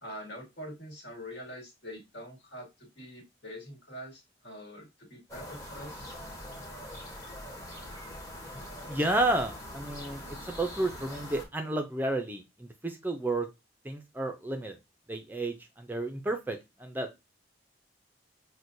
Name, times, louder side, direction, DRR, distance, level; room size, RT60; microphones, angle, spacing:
voice 1, 0.0-6.1, equal, 70° left, 1 dB, 1.6 m, -44 dB
sound 1, 5.3-11.4, equal, 20° left, 0.9 m, -43 dB
voice 2, 8.9-13.5 13.8-14.8 15.1-17.2, right 2 dB, 10° right, 5 dB, 0.4 m, -31 dB
6.0 x 2.1 x 2.6 m, 0.22 s
head